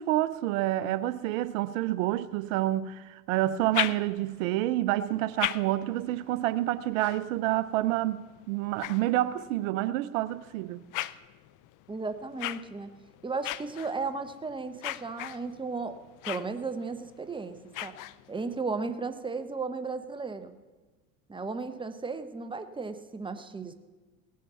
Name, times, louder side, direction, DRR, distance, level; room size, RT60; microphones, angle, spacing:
voice 1, 0.0-10.8, right 15 dB, 80° right, 0.6 m, -28 dB
sound 1, 3.5-4.5 5.1-9.7 10.3-18.5, left 16 dB, 50° left, 0.5 m, -39 dB
voice 2, 11.9-12.9 13.2-16.0 16.2-17.9 18.3-20.5 21.3-23.7, right 4 dB, 10° right, 1.0 m, -35 dB
18.0 x 6.6 x 6.9 m
hypercardioid pair, 85°, 40 cm